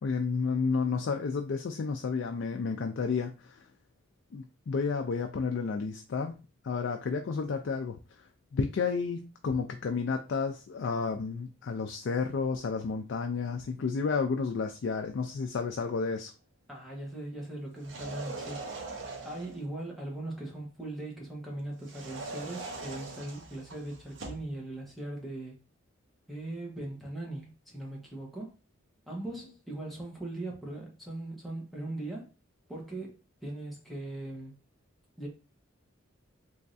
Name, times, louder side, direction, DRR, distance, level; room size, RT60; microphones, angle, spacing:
voice 1, 0.0-3.6 4.3-6.4 6.6-8.0 8.5-16.3, left 5 dB, 60° left, 0.4 m, -31 dB
voice 2, 16.7-18.6 19.2-25.6 26.3-28.5 29.1-32.3 32.7-34.6 35.2-35.3, right 1 dB, ahead, 1.0 m, -39 dB
sound 1, 17.8-19.6 21.8-24.5, right 3 dB, 60° right, 0.7 m, -41 dB
3.5 x 3.1 x 2.6 m
head